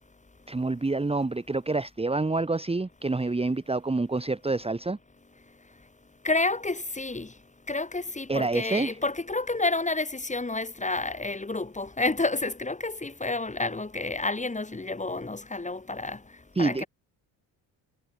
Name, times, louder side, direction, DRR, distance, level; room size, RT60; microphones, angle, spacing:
voice 1, 0.5-5.0 8.3-8.9 16.6-16.8, right 3 dB, 15° right, 1.7 m, -27 dB
voice 2, 6.2-7.3 7.7-16.2 16.6-16.9, left 2 dB, 15° left, 4.0 m, -29 dB
supercardioid pair, 70°, 42 cm